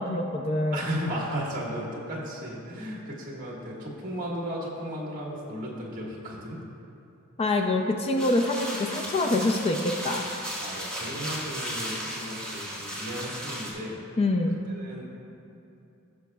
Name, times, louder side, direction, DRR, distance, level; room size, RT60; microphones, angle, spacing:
voice 1, 0.0-0.9 7.4-10.2 14.2-14.6, left 2 dB, 25° left, 3 dB, 0.4 m, -25 dB
voice 2, 0.7-6.6 10.6-14.0 14.7-15.0, equal, 40° right, -4 dB, 1.7 m, -35 dB
sound 1, 8.2-13.7, equal, 5° left, 1.5 m, -35 dB
16.0 x 6.2 x 2.3 m, 2.8 s
head